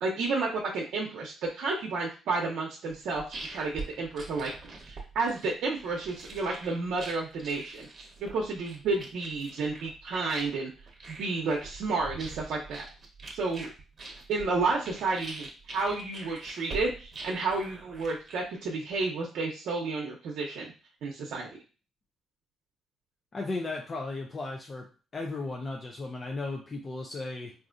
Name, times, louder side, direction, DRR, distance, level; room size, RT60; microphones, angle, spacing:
voice 1, 0.0-4.5 4.8-7.9 8.2-10.7 11.1-12.9 13.3-13.7 14.3-20.7 21.0-21.5, right 3 dB, 75° right, -2 dB, 0.7 m, -31 dB
sound 1, 2.9-19.0, right 3 dB, 40° right, 0.9 m, -44 dB
voice 2, 23.3-24.9 25.1-27.5, left 3 dB, 35° left, 1 dB, 0.5 m, -35 dB
4.1 x 2.5 x 2.5 m, 0.35 s
cardioid pair, 90°, 0 cm